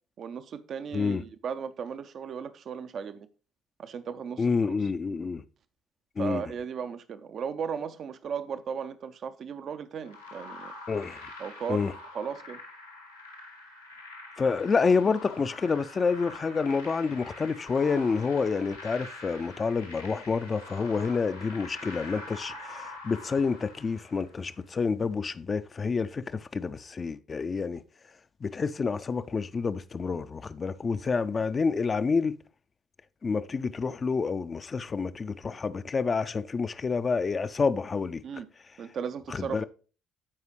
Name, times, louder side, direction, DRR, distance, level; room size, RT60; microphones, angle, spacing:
voice 1, 0.2-3.3 3.8-4.8 6.2-10.7 11.4-11.9 12.1-12.6 38.2-38.5 38.8-39.6, right 7 dB, 45° right, 0.5 m, -36 dB
voice 2, 4.4-5.4 6.2-6.4 10.9-11.3 11.7-11.9 14.4-27.8 28.4-32.4 33.2-38.4 39.3-39.6, left 5 dB, 30° left, 0.4 m, -28 dB
sound 1, 10.1-24.4, left 2 dB, 90° left, 1.2 m, -45 dB
13.0 x 4.8 x 3.1 m
figure-of-eight pair, 50°, 0 cm